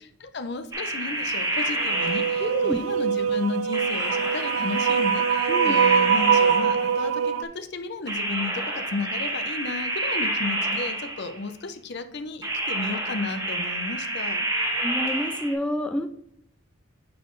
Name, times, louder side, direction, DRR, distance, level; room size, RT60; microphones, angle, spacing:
voice 1, 0.0-14.5, left 3 dB, 55° left, 9 dB, 0.7 m, -33 dB
sound 1, 0.7-2.8 3.7-7.1 8.1-11.4 12.4-15.5, right 1 dB, 20° right, 2.1 m, -28 dB
sound 2, 1.8-7.4, right 7 dB, 90° right, 0.4 m, -23 dB
voice 2, 2.4-2.8 5.5-5.7 14.8-16.1, left 1 dB, 5° left, 5 dB, 0.4 m, -28 dB
9.4 x 4.2 x 3.2 m, 0.67 s
head